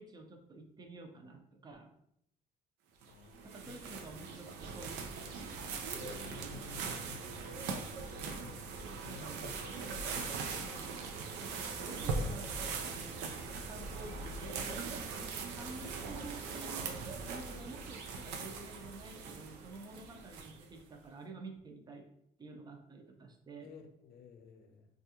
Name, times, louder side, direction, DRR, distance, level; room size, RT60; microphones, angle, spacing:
voice 1, 0.0-1.9 3.4-5.0 9.1-9.5 10.6-10.9 11.4-13.3 13.6-16.9 17.2-22.1 22.4-23.7, right 3 dB, 25° right, 4 dB, 0.5 m, -50 dB
sound 1, 3.0-20.8, right 4 dB, 90° right, 0.5 m, -41 dB
voice 2, 3.1-3.8 5.9-8.0 8.4-9.6 10.1-10.4 23.6-24.9, left 8 dB, 65° left, 6 dB, 0.5 m, -54 dB
3.3 x 2.4 x 2.8 m, 0.74 s
cardioid pair, 110°, 17 cm